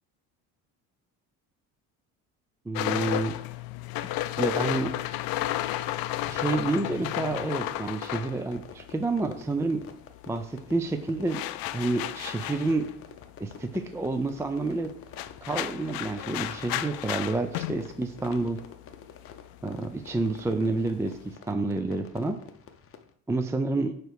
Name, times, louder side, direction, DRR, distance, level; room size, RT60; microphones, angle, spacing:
voice 1, 2.7-3.4 4.4-5.0 6.3-9.8 10.3-12.9 13.4-14.9 15.4-18.6 19.6-22.4 23.3-24.0, right 3 dB, 5° right, 7 dB, 0.4 m, -29 dB
sound 1, 2.8-9.5 9.7-21.3, left 14 dB, 70° left, 0.5 m, -33 dB
Fireworks, 5.2-23.1, left 7 dB, 35° left, 0.8 m, -49 dB
8.9 x 3.2 x 5.0 m, 0.65 s
supercardioid pair, 95°, 37 cm